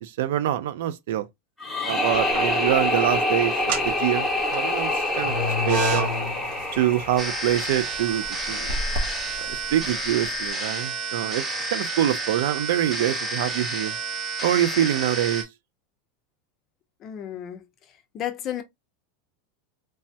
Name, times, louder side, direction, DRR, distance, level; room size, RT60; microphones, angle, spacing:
voice 1, 0.0-1.3 1.9-6.1 6.7-8.8 9.4-11.4 11.7-14.0 14.4-15.5, right 12 dB, 70° right, 0.4 m, -25 dB
sound 1, 1.6-8.6, left 1 dB, 5° left, 1.0 m, -26 dB
sound 2, 2.1-2.8 3.5-10.4, equal, 50° right, 0.8 m, -30 dB
sound 3, 7.2-15.4, right 2 dB, 15° right, 0.7 m, -30 dB
voice 2, 17.0-17.6 18.1-18.6, left 11 dB, 30° left, 0.5 m, -32 dB
3.3 x 2.1 x 2.7 m
supercardioid pair, 170°, 0 cm